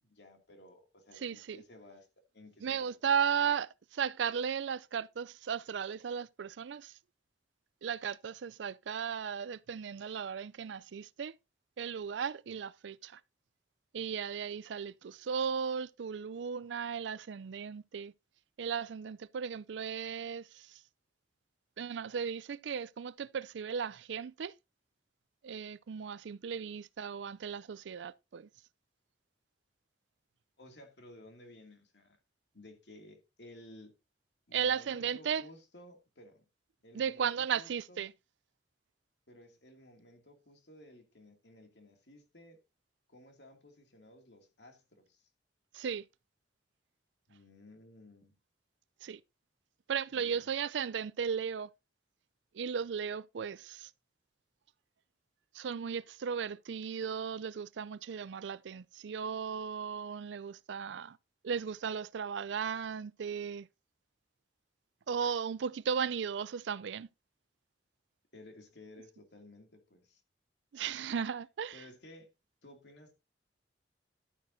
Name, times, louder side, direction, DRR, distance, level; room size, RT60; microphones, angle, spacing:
voice 1, 0.0-2.1 2.3-3.5 30.6-32.2 32.5-34.0 34.5-36.4 36.8-38.1 39.3-42.6 43.1-45.3 47.3-48.4 50.1-50.5 68.3-70.2 71.7-72.3 72.6-73.1, left 1 dB, 75° left, 2.4 m, -56 dB
voice 2, 1.2-1.6 2.6-6.9 7.8-11.4 11.8-13.2 13.9-18.1 18.6-20.8 21.8-24.5 25.4-28.5 34.5-35.4 36.9-38.1 45.7-46.1 49.0-49.2 49.9-51.7 52.5-53.9 55.5-61.2 61.4-63.7 65.1-67.1 70.7-71.8, right 7 dB, 85° right, 0.4 m, -36 dB
11.5 x 9.2 x 2.7 m
head